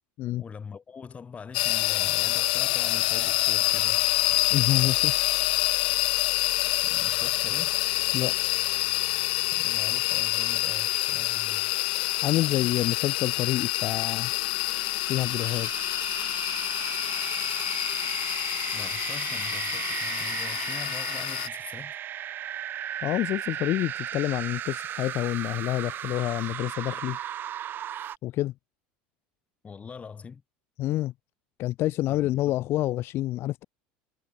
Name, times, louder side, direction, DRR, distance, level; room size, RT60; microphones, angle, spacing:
voice 1, 0.3-4.1 6.6-7.8 9.5-11.7 12.4-12.7 18.7-22.0 29.6-30.4 32.1-32.6, left 6 dB, 25° left, 3.1 m, -43 dB
sound 1, 1.5-21.5, left 21 dB, 75° left, 0.8 m, -27 dB
voice 2, 4.5-5.1 8.1-8.4 12.2-14.3 15.0-15.7 23.0-27.2 28.2-28.5 30.8-31.1 31.6-33.6, left 15 dB, 55° left, 1.6 m, -28 dB
sound 2, 14.7-28.2, right 11 dB, 45° right, 1.1 m, -35 dB
hypercardioid pair, 90°, 5 cm